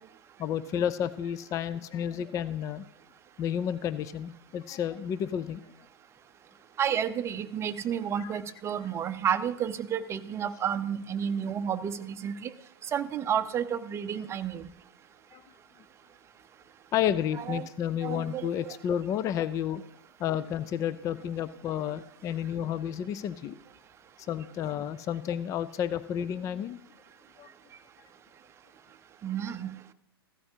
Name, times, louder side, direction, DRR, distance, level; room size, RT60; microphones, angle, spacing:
voice 1, 0.4-2.8 3.4-5.6 8.2-8.3 15.3-15.4 16.9-19.8 20.2-23.6 24.3-26.8 27.4-27.5, left 9 dB, 25° left, 15 dB, 0.5 m, -31 dB
voice 2, 6.8-12.5 12.9-14.7 17.4-17.7 18.0-18.8 29.2-29.8, right 8 dB, 20° right, 10 dB, 0.7 m, -31 dB
15.5 x 13.0 x 2.8 m, 0.77 s
figure-of-eight pair, 105°, 13 cm